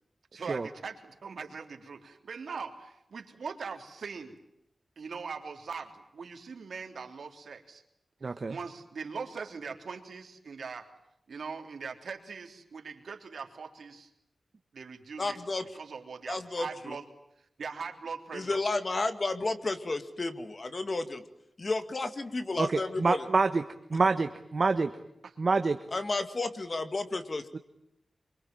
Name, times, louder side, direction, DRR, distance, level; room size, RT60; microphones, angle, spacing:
voice 1, 0.3-4.3 5.0-7.8 8.5-10.9 11.3-14.1 14.7-15.4 15.7-17.0 17.6-18.6 25.2-25.3, right 5 dB, 80° right, 5 dB, 3.5 m, -41 dB
voice 2, 8.2-8.6 22.6-23.6 23.9-24.9 25.4-25.8 27.5-27.6, right 4 dB, 50° right, 8 dB, 1.3 m, -26 dB
voice 3, 15.2-15.6 16.3-17.0 18.3-21.2 21.6-23.3 25.9-27.6, left 3 dB, 40° left, 10 dB, 2.2 m, -32 dB
26.0 x 23.5 x 9.1 m, 0.81 s
wide cardioid pair, 125°, 0 cm